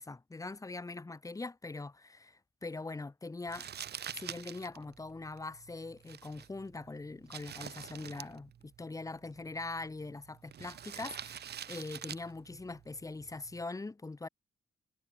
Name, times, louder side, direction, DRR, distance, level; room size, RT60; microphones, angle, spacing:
voice 1, 0.0-3.7 4.1-14.3, left 3 dB, 20° left, 2.0 m, -42 dB
Crumpling crinkling, 3.5-13.6, right 9 dB, 70° right, 2.7 m, -48 dB
wide cardioid pair, 135°, 18 cm